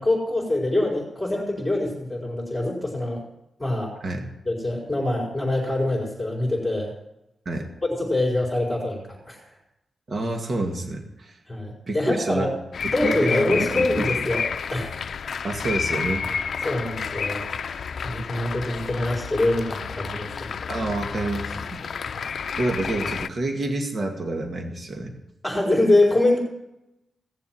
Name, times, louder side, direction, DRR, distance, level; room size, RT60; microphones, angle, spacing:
voice 1, 0.0-3.2 3.6-3.9 4.5-6.9 7.8-9.4 11.5-12.5 12.9-14.9 16.6-17.5 18.0-20.5 25.4-26.4, left 2 dB, 5° left, -4 dB, 4.3 m, -24 dB
voice 2, 10.1-11.4 11.9-12.5 12.8-14.0 15.4-16.3 20.7-21.9 22.6-25.2, right 2 dB, 45° right, 2 dB, 2.0 m, -28 dB
sound 1, 12.7-23.3, left 6 dB, 65° left, 0.5 m, -30 dB
17.5 x 7.3 x 7.7 m, 0.88 s
wide cardioid pair, 100°, 0 cm